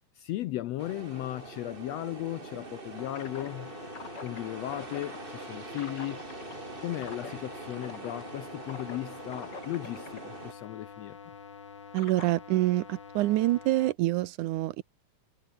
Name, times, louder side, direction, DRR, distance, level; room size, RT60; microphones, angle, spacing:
voice 1, 0.2-3.7 4.2-6.2 6.8-11.2, left 15 dB, 75° left, 1.5 m, -36 dB
sound 1, 0.8-10.5, right 3 dB, 20° right, 1.8 m, -44 dB
sound 2, 3.0-13.9, left 6 dB, 40° left, 2.4 m, -45 dB
voice 2, 11.9-14.8, right 16 dB, 80° right, 2.2 m, -26 dB
omnidirectional pair, 3.6 m